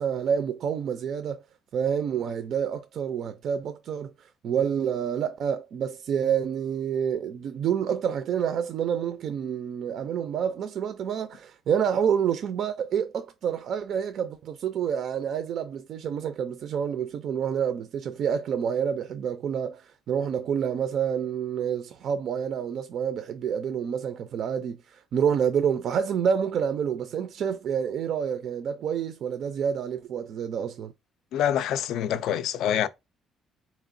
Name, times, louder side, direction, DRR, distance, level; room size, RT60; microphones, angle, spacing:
voice 1, 0.0-1.4 1.7-4.1 4.4-30.9, right 8 dB, 50° right, 0.3 m, -28 dB
voice 2, 31.3-32.9, left 10 dB, 70° left, 0.3 m, -26 dB
4.1 x 2.9 x 2.5 m
cardioid pair, 165°, 0 cm